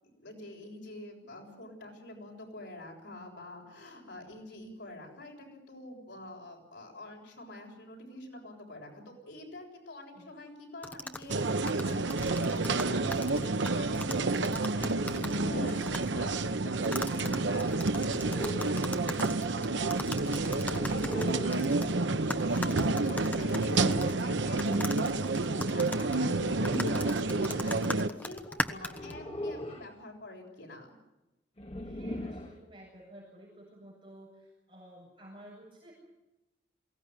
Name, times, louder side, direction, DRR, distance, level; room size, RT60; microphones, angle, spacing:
voice 1, 0.0-18.3 19.5-30.9, left 1 dB, 80° left, 1 dB, 7.4 m, -47 dB
sound 1, 10.8-15.4 15.7-16.1 16.8-21.9 22.3-24.2 24.6-29.1, left 1 dB, 10° left, 1.1 m, -38 dB
sound 2, 11.3-28.1, right 3 dB, 85° right, 0.9 m, -29 dB
sound 3, 15.0-15.9 17.9-18.9 20.6-21.6 23.3-24.3 26.2-27.2 28.9-29.9 31.6-32.6, left 1 dB, 35° left, 2.0 m, -39 dB
voice 2, 28.7-29.3 31.8-35.9, equal, 30° right, -4 dB, 7.5 m, -53 dB
22.5 x 18.0 x 9.9 m, 0.98 s
head